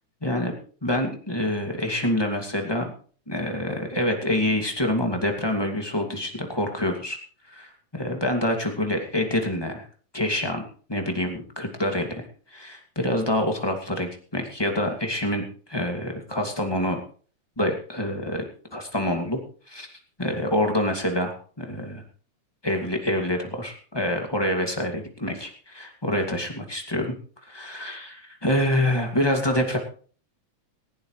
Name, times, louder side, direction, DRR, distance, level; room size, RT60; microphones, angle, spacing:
voice 1, 0.2-0.5 0.8-2.9 3.3-7.2 7.5-9.9 10.1-10.6 10.9-12.2 12.5-17.0 17.6-18.5 18.7-19.4 19.7-19.9 20.2-22.0 22.6-27.1 27.5-29.8, left 1 dB, 10° left, 3 dB, 1.9 m, -26 dB
19.0 x 15.5 x 3.2 m, 0.43 s
omnidirectional pair, 3.4 m